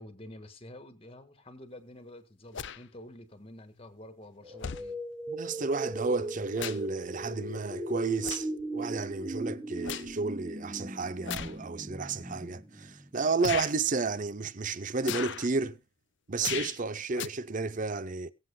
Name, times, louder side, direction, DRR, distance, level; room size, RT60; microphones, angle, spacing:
voice 1, 0.0-5.0, left 1 dB, 25° left, 1.6 m, -48 dB
sound 1, 2.5-2.8 3.9-4.0 4.6-4.9 6.1-7.0 7.3-7.6 8.2-8.6 9.1-10.1 11.2-11.6 12.3-12.4 13.4-13.7 15.0-15.5 16.4-16.8 17.1-17.3, left 8 dB, 55° left, 0.6 m, -37 dB
sound 2, 4.4-13.4, right 1 dB, 15° right, 1.1 m, -39 dB
voice 2, 5.3-15.8 16.3-18.3, right 4 dB, 40° right, 0.6 m, -32 dB
23.0 x 7.8 x 2.2 m
head